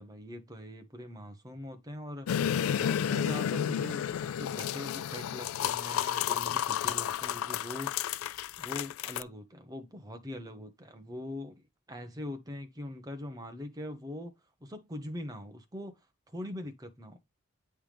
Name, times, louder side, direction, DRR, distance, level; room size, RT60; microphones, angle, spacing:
voice 1, 0.0-8.1 8.6-14.3 14.6-15.9 16.3-17.2, left 1 dB, 15° right, 0.9 m, -42 dB
sound 1, 2.3-9.2, left 9 dB, 85° left, 0.3 m, -31 dB
8.9 x 3.4 x 3.3 m
head